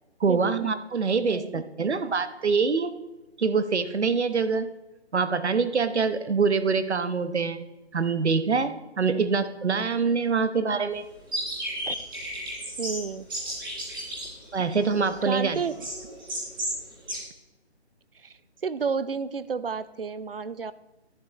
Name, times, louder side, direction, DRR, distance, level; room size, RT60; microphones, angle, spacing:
voice 1, 0.2-2.9 3.4-4.7 5.1-7.6 7.9-11.0 14.5-15.6, right 5 dB, 75° right, 11 dB, 1.0 m, -25 dB
sound 1, 11.3-16.8 17.1-17.2, equal, 20° right, 2.1 m, -34 dB
voice 2, 12.8-13.3 15.3-15.7 18.2-18.3 18.6-20.7, right 5 dB, 55° right, 16 dB, 0.6 m, -31 dB
11.0 x 9.0 x 4.1 m, 1.0 s
hypercardioid pair, 180°, 34 cm